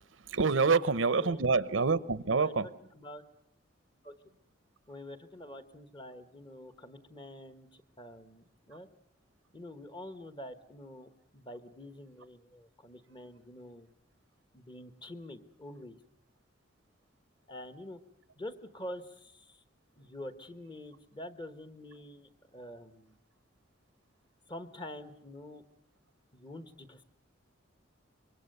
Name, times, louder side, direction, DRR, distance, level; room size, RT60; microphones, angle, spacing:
voice 1, 0.0-2.7, right 4 dB, 75° right, 17 dB, 0.8 m, -27 dB
voice 2, 0.6-0.9 1.2-1.5 2.2-2.5 2.9-3.2 4.0-4.1 4.9-8.9 9.5-13.9 14.5-16.0 17.5-18.0 18.4-19.6 20.0-23.1 24.5-25.6 26.3-27.0, left 1 dB, 25° left, 11 dB, 1.2 m, -46 dB
25.0 x 22.5 x 6.7 m, 0.75 s
head